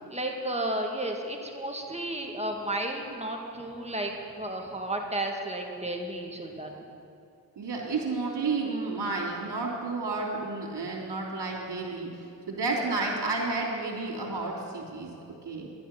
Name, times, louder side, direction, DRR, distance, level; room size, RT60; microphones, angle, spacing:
voice 1, 0.1-6.9 14.2-14.3, right 1 dB, 15° right, 1 dB, 1.8 m, -33 dB
voice 2, 7.6-15.1 15.4-15.7, right 3 dB, 65° right, -1 dB, 3.1 m, -31 dB
11.0 x 10.5 x 6.0 m, 2.6 s
cardioid pair, 55°, 44 cm